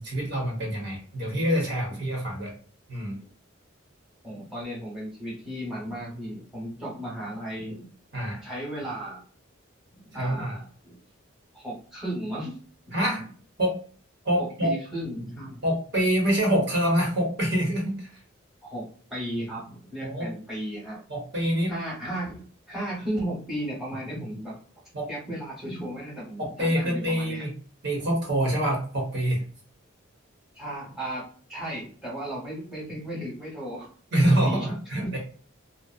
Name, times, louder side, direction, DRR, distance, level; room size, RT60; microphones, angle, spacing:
voice 1, 0.0-2.5 2.9-3.2 8.1-8.4 10.1-10.5 12.9-13.2 13.6-13.8 14.2-14.7 15.6-18.1 20.0-20.3 21.1-21.7 24.9-25.1 26.4-27.6 27.8-29.4 34.1-35.2, right 1 dB, 55° right, -2 dB, 0.9 m, -25 dB
voice 2, 4.2-7.9 8.4-9.2 10.0-11.0 11.5-12.6 13.2-13.3 14.4-15.6 18.6-21.0 21.7-24.6 25.1-27.5 30.5-33.9 34.4-34.7 35.0-35.1, right 1 dB, ahead, -6 dB, 0.9 m, -35 dB
2.7 x 2.1 x 2.3 m, 0.42 s
head